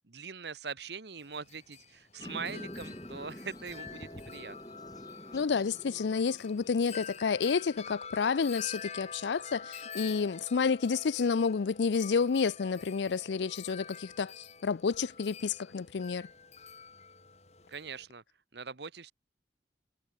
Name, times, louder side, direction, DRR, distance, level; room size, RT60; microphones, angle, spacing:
voice 1, 0.1-4.6 17.7-18.2 18.5-19.1, right 5 dB, 70° right, 1.2 m, -42 dB
Wind chime, 1.2-18.0, left 6 dB, 35° left, 3.9 m, -48 dB
sound 1, 2.2-7.9, equal, 20° left, 4.8 m, -48 dB
voice 2, 5.3-16.3, left 5 dB, 80° left, 0.5 m, -30 dB
head